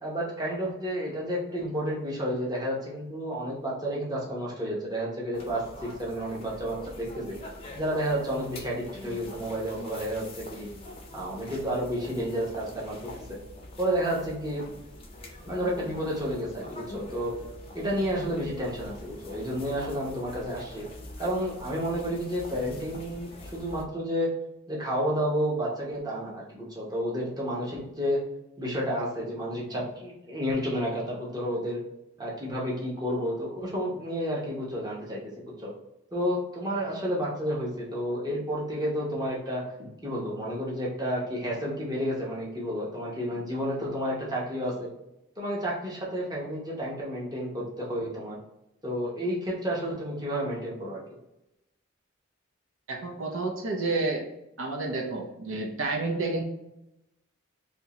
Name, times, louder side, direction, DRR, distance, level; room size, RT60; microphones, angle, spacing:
voice 1, 0.0-7.4 7.7-10.7 11.1-13.0 13.3-13.4 13.8-14.6 15.5-17.3 17.7-20.8 21.2-24.3 24.7-28.2 28.6-31.8 32.2-35.7 36.1-44.9 45.4-48.4 48.8-51.0, equal, 20° right, -4 dB, 0.8 m, -31 dB
sound 1, 5.3-23.8, left 1 dB, 25° left, 0.5 m, -44 dB
voice 2, 52.9-54.2 54.6-56.4, right 3 dB, 70° right, 1 dB, 0.7 m, -30 dB
3.6 x 2.8 x 2.9 m, 0.89 s
head